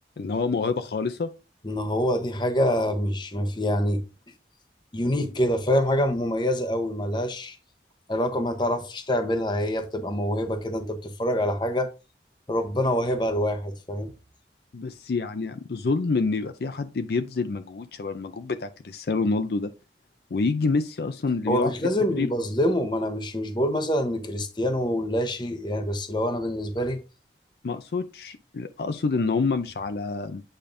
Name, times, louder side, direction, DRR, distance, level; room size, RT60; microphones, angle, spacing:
voice 1, 0.2-1.3 14.7-19.7 20.3-21.7 22.1-22.3 27.6-30.4, left 4 dB, 60° left, 0.4 m, -27 dB
voice 2, 1.6-4.0 4.9-7.6 8.1-11.9 12.5-14.1 21.5-27.0, equal, 25° left, 0.9 m, -26 dB
8.8 x 5.1 x 2.6 m
head